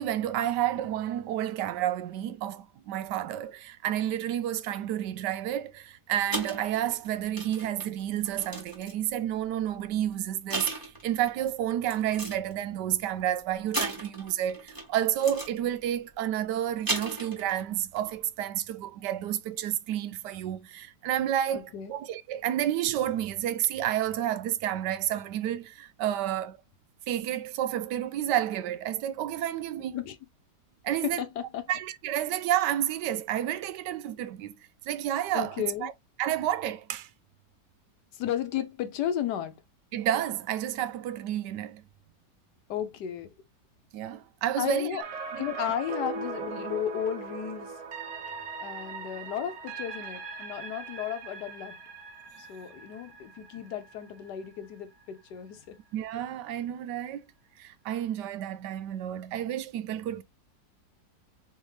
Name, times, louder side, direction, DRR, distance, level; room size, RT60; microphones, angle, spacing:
voice 1, 0.0-21.6 21.9-26.6 27.1-30.0 30.8-31.2 31.7-34.6 34.9-35.9 36.2-37.1 39.9-41.8 43.9-45.0 45.4-45.5 55.9-57.2 57.6-60.2, right 11 dB, 80° right, 1.2 m, -30 dB
sound 1, 6.3-9.1 9.9-10.1 10.5-11.3 11.9-12.5 13.7-14.9 15.2-15.6 16.6-17.6 18.0-18.1, right 2 dB, 15° right, 1.2 m, -35 dB
voice 2, 21.5-21.9 29.9-30.2 30.9-31.7 35.3-35.9 38.1-39.6 42.7-43.3 44.6-45.0 45.4-47.8 48.6-51.8 52.4-55.8, left 10 dB, 75° left, 1.3 m, -34 dB
sound 2, 45.0-55.0 55.4-55.5, right 4 dB, 50° right, 1.2 m, -40 dB
4.0 x 3.5 x 3.1 m
omnidirectional pair, 1.9 m